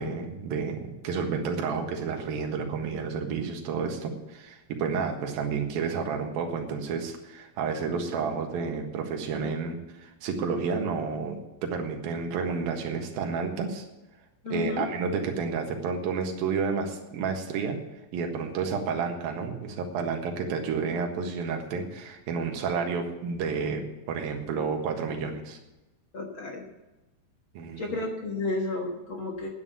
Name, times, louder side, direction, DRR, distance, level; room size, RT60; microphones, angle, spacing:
voice 1, 0.0-13.9 14.5-17.8 18.1-25.6 27.5-27.8, right 5 dB, 80° right, 3 dB, 3.3 m, -30 dB
voice 2, 14.4-14.9 26.1-26.7 27.8-29.5, left 3 dB, 50° left, 1 dB, 1.5 m, -32 dB
9.5 x 9.4 x 8.6 m, 1.0 s
omnidirectional pair, 4.2 m